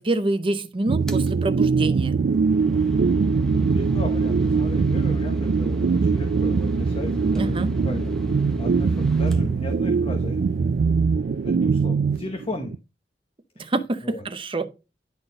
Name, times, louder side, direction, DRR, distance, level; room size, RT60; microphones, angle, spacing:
voice 1, 0.0-2.2 7.3-7.7 13.6-14.7, right 2 dB, 30° right, 0.8 m, -26 dB
sound 1, 0.9-12.8, right 5 dB, 60° right, 0.3 m, -22 dB
sound 2, 1.1-1.3 2.2-10.2, equal, 5° left, 0.8 m, -31 dB
voice 2, 3.6-8.1 8.6-10.4 11.4-12.7 14.0-14.2, left 2 dB, 30° left, 0.9 m, -36 dB
sound 3, 6.5-11.7, left 1 dB, 50° left, 5.2 m, -40 dB
10.0 x 4.3 x 3.9 m
head